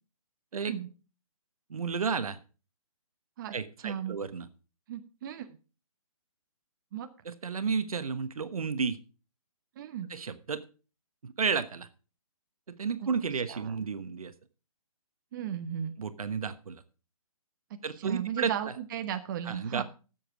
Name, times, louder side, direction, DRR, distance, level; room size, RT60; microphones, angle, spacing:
voice 1, 0.5-0.9 3.4-3.5 3.8-4.2 4.9-5.6 6.9-7.1 9.8-10.1 13.5-13.7 15.3-16.0 18.0-19.8, right 9 dB, 35° right, 8 dB, 1.0 m, -35 dB
voice 2, 1.7-2.4 3.5-4.5 7.2-9.0 10.1-10.6 11.2-11.9 12.7-14.3 16.0-16.8 17.8-18.7 19.4-19.8, right 5 dB, 70° right, 11 dB, 1.3 m, -32 dB
13.0 x 7.7 x 5.0 m, 0.35 s
hypercardioid pair, 150°, 19 cm